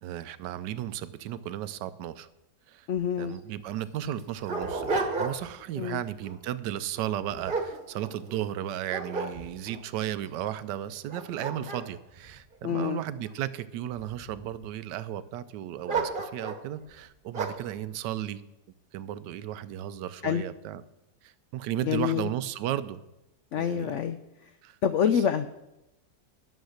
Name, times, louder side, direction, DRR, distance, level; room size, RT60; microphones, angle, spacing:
voice 1, 0.0-2.3 2.7-2.9 3.2-18.4 18.9-20.8 21.2-23.0 23.5-24.0 24.6-24.8 25.0-25.2, right 11 dB, 85° right, 14 dB, 1.2 m, -35 dB
voice 2, 2.9-3.4 5.8-6.0 12.6-13.0 20.2-20.4 21.8-22.3 23.5-24.2 24.8-25.6, left 8 dB, 85° left, 10 dB, 0.6 m, -27 dB
Dog, 3.0-3.1 3.3-3.4 4.0-5.6 6.1-6.4 7.0-8.5 8.9-9.8 10.4-10.5 11.0-13.3 13.9-14.6 15.9-16.7 17.3-17.7, right 3 dB, 35° right, 1.2 m, -33 dB
11.5 x 7.2 x 6.4 m, 0.93 s
omnidirectional pair, 1.8 m